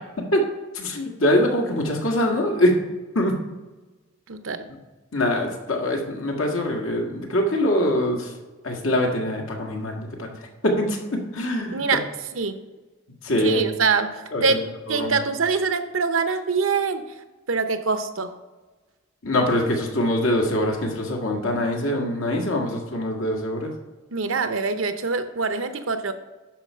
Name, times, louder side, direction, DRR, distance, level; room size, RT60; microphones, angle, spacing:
voice 1, 0.7-2.8 3.2-3.4 5.1-8.3 8.6-10.3 10.6-11.8 13.2-13.6 14.3-14.6 14.9-15.1 19.2-23.7, left 1 dB, 85° left, 1 dB, 1.7 m, -23 dB
voice 2, 4.3-4.6 11.7-12.1 12.4-12.6 13.4-17.1 17.5-18.3 24.1-26.1, right 4 dB, 75° right, 9 dB, 0.8 m, -24 dB
11.0 x 4.7 x 5.5 m, 1.2 s
head